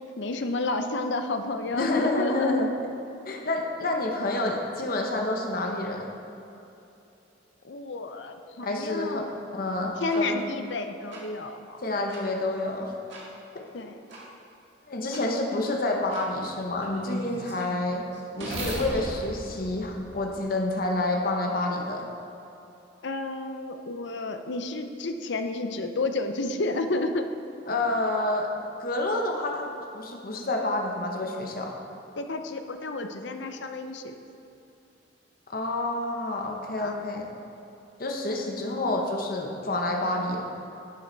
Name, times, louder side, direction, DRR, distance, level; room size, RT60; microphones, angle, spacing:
voice 1, 0.2-2.7 7.6-9.3 10.0-11.8 13.7-14.0 23.0-27.3 32.2-34.2 36.8-37.0, left 2 dB, 65° left, 7 dB, 0.6 m, -31 dB
voice 2, 1.7-2.7 3.3-6.1 8.6-9.2 9.5-10.4 11.8-12.9 13.5-13.7 14.9-18.0 18.3-22.1 27.7-28.5 28.8-29.7 29.9-31.7 35.5-37.3 38.0-40.4, left 2 dB, 50° left, 1 dB, 1.0 m, -28 dB
sound 1, 10.1-10.2 11.1-11.2 12.1-12.2 13.1-13.2 14.1-14.2 15.1-15.2 16.1-16.2 16.8-20.7, right 1 dB, 65° right, 1.8 m, -38 dB
11.0 x 7.7 x 4.0 m, 2.9 s
head